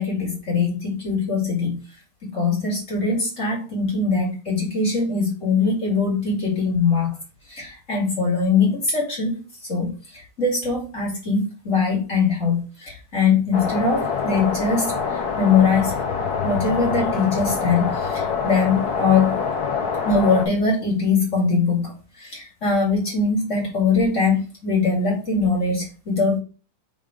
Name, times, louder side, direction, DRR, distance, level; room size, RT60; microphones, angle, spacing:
voice 1, 0.0-1.8 2.2-7.2 7.5-16.0 16.4-19.4 20.0-26.4, left 4 dB, 25° left, -3 dB, 2.2 m, -22 dB
sound 1, 13.5-20.5, left 5 dB, 70° left, 0.8 m, -25 dB
5.2 x 3.7 x 4.9 m, 0.35 s
omnidirectional pair, 3.3 m